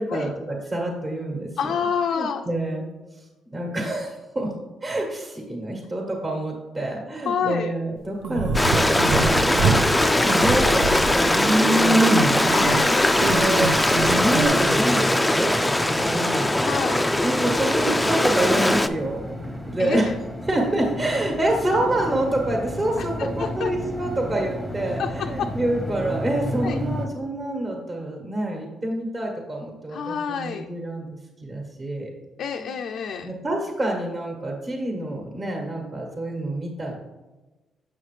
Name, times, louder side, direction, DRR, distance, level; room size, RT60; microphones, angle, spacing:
voice 1, 0.0-1.5 2.1-2.9 3.1-3.2 3.5-4.5 4.8-9.9 10.2-12.7 13.2-13.7 14.1-16.5 17.2-20.1 20.4-31.1 31.4-32.1 33.2-37.0, right 1 dB, 30° right, -1 dB, 1.4 m, -27 dB
voice 2, 1.6-2.4 7.3-7.7 10.0-10.3 12.5-13.3 16.6-17.0 19.8-20.1 23.0-23.1 23.4-23.7 25.0-25.5 26.6-26.8 29.9-30.7 32.4-33.3, left 7 dB, 70° left, 4 dB, 0.4 m, -28 dB
sound 1, 8.2-9.8 10.2-14.5, right 2 dB, 85° right, 0.7 m, -24 dB
Stream, 8.5-18.9, left 1 dB, 10° left, 0.4 m, -20 dB
sound 2, 13.8-27.1, equal, 10° right, 1.2 m, -33 dB
7.5 x 5.7 x 3.2 m, 1.1 s
cardioid pair, 90°, 0 cm